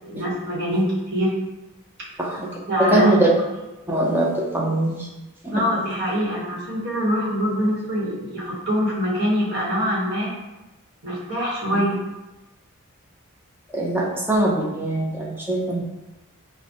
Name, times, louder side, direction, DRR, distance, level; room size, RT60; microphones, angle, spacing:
voice 1, 0.0-1.3 2.4-3.1 5.5-10.3 11.0-11.9, equal, 50° right, -6 dB, 1.0 m, -24 dB
voice 2, 2.8-3.3 3.9-5.1 5.4-5.6 11.7-11.9 13.7-15.8, right 1 dB, 10° right, -3 dB, 0.4 m, -22 dB
4.7 x 2.1 x 2.6 m, 1.0 s
head